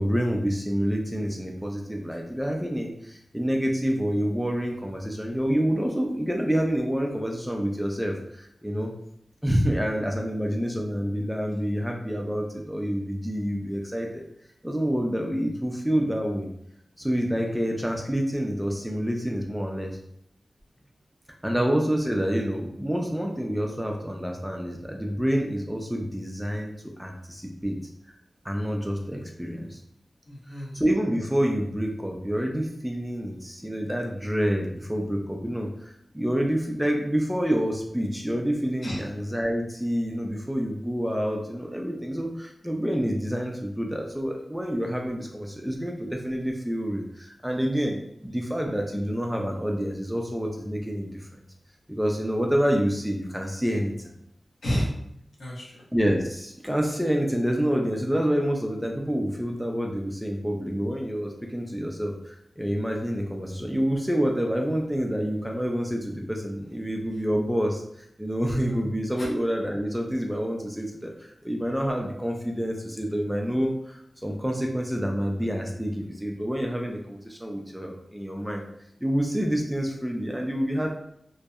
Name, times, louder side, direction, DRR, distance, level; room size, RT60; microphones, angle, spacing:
voice 1, 0.0-8.9 9.4-14.3 14.6-16.5 17.0-19.9 21.4-26.7 27.0-27.8 28.4-29.8 30.7-51.4 51.9-54.1 55.9-78.7 79.0-81.0, equal, ahead, 1 dB, 0.3 m, -28 dB
voice 2, 30.3-30.8 38.8-39.0 54.6-55.0 55.4-55.9 67.1-67.2 68.6-68.8 69.2-69.3, equal, 75° left, -4 dB, 0.8 m, -31 dB
2.6 x 2.1 x 2.3 m, 0.74 s
wide cardioid pair, 100°, 0 cm